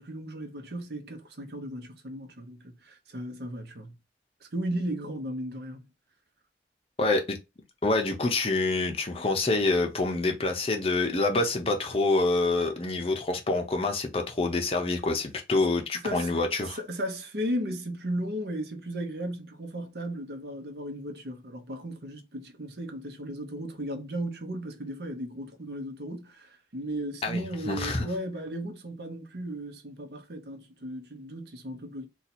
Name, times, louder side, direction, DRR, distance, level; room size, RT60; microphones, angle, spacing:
voice 1, 0.0-3.9 4.4-5.8 15.9-16.3 16.6-32.1, right 1 dB, 65° right, 0.8 m, -35 dB
voice 2, 7.0-7.4 7.8-16.8 27.2-28.1, left 2 dB, 35° left, 0.6 m, -26 dB
2.7 x 2.3 x 4.1 m
head